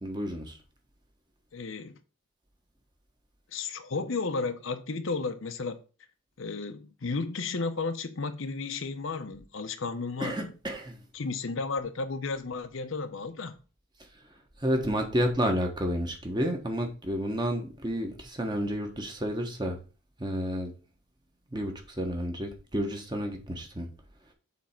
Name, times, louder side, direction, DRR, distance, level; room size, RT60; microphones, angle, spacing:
voice 1, 0.0-0.6 10.2-11.0 14.6-19.8 20.2-20.7 21.5-23.9, equal, 20° right, 1.2 m, -30 dB
voice 2, 1.5-2.0 3.5-5.8 6.4-10.5 11.1-13.6, left 4 dB, 70° left, 0.7 m, -33 dB
7.3 x 3.5 x 5.7 m
head